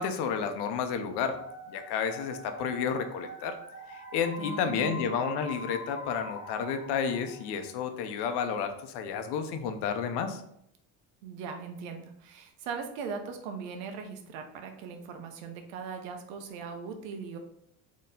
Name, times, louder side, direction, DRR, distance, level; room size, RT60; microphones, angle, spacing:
voice 1, 0.0-1.4 1.7-3.6 3.9-10.4, left 6 dB, 75° left, 7 dB, 0.7 m, -31 dB
sound 1, 1.1-7.9, equal, 10° right, 1.5 m, -44 dB
voice 2, 4.4-5.0 11.2-17.4, right 5 dB, 90° right, 5 dB, 0.8 m, -39 dB
4.4 x 3.1 x 3.6 m, 0.73 s
supercardioid pair, 80°, 41 cm